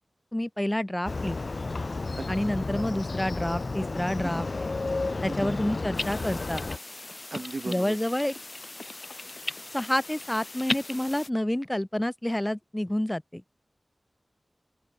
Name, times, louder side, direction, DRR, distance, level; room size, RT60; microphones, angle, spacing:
voice 1, 0.3-1.4 2.3-4.5 5.2-6.6 7.6-8.3 9.7-13.4, left 1 dB, 15° left, 5.0 m, -29 dB
Motorcycle, 1.1-6.8, left 3 dB, 60° left, 2.4 m, -32 dB
sound 1, 6.0-11.3, left 2 dB, 45° left, 4.8 m, -37 dB
voice 2, 7.3-7.9, right 3 dB, 65° right, 4.9 m, -36 dB
wide cardioid pair, 65°, 0 cm